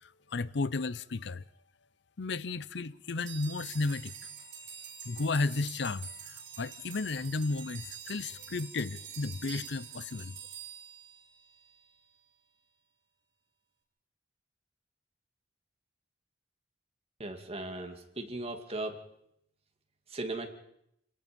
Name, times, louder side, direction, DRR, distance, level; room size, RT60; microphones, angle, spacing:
voice 1, 0.0-1.4 2.2-4.2 5.0-10.4, left 3 dB, 65° left, 0.7 m, -33 dB
sound 1, 3.2-11.7, right 7 dB, 70° right, 4.7 m, -46 dB
voice 2, 17.2-19.0 20.1-20.5, right 2 dB, 35° right, 2.4 m, -37 dB
27.5 x 18.5 x 5.3 m
head